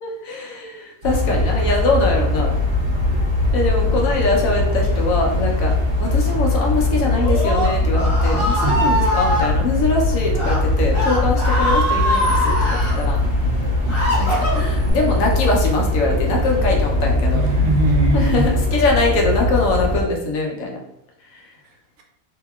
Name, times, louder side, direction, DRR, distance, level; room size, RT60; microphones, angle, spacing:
voice 1, 0.0-2.6 3.5-5.7 6.0-13.2 14.2-17.4 18.1-20.8 21.3-21.5, left 3 dB, 65° left, 0 dB, 0.9 m, -22 dB
sound 1, 1.0-20.0, left 2 dB, 40° right, 1.0 m, -20 dB
Screaming, 7.1-9.5 10.3-10.6 10.9-13.0 13.5-14.9, equal, 30° left, 0.5 m, -22 dB
voice 2, 8.6-8.9 11.1-11.3 13.5-13.7 17.3-18.5 21.6-22.0, right 1 dB, 65° right, 1 dB, 0.7 m, -23 dB
2.8 x 2.7 x 2.3 m, 0.81 s
omnidirectional pair, 1.7 m